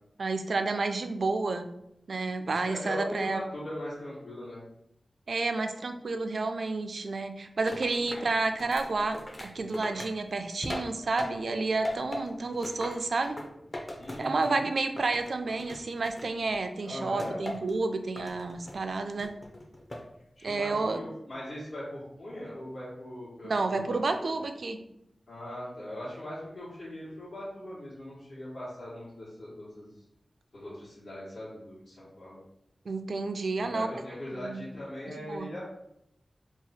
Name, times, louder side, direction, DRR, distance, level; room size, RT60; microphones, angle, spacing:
voice 1, 0.2-1.7 2.1-3.4 5.3-13.4 14.2-19.3 20.4-21.0 23.4-24.8 32.9-33.9 34.3-34.6 35.2-35.5, right 3 dB, 65° right, 7 dB, 0.3 m, -30 dB
voice 2, 2.4-4.6 14.0-14.6 16.8-17.4 20.4-24.4 25.3-30.0 30.5-32.4 33.6-35.6, left 1 dB, 75° left, -11 dB, 1.2 m, -40 dB
sound 1, 7.7-11.6 11.8-14.6 15.0-16.6 17.2-17.8 18.2-18.8 19.2-20.1 20.5-20.9, left 1 dB, 25° left, 0.5 m, -40 dB
2.8 x 2.3 x 4.1 m, 0.80 s
wide cardioid pair, 110°, 0 cm